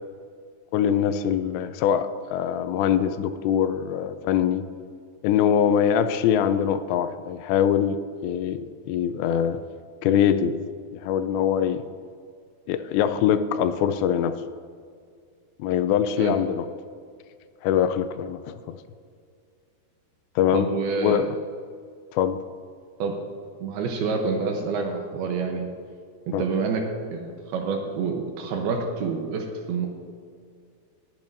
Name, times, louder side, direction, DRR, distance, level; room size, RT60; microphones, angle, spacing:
voice 1, 0.7-4.7 5.2-9.6 10.0-10.6 11.0-11.8 12.7-14.4 15.6-16.7 17.6-18.8 20.4-20.7 21.0-21.3 22.1-22.4 26.3-26.4, left 9 dB, 85° left, 11 dB, 2.7 m, -23 dB
voice 2, 20.5-21.3 23.0-23.2 23.6-25.7 26.3-26.9 27.1-29.9, right 4 dB, 75° right, 3 dB, 2.5 m, -27 dB
20.5 x 8.8 x 2.6 m, 2.2 s
omnidirectional pair, 5.1 m